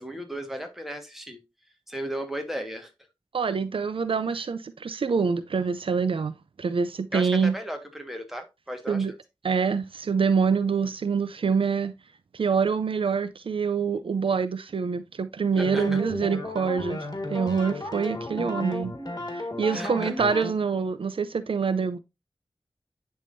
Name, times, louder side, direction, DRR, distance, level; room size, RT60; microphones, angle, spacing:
voice 1, 0.0-1.4 1.9-2.9 7.1-9.2 15.6-16.0 19.7-20.1, equal, 5° right, 1.5 m, -35 dB
voice 2, 3.3-7.5 8.9-9.1 9.4-11.9 12.3-17.0 17.3-18.9 19.6-22.0, right 5 dB, 80° right, 0.4 m, -25 dB
sound 1, 15.5-20.5, left 2 dB, 45° left, 1.7 m, -34 dB
10.5 x 3.6 x 2.6 m
wide cardioid pair, 65°, 9 cm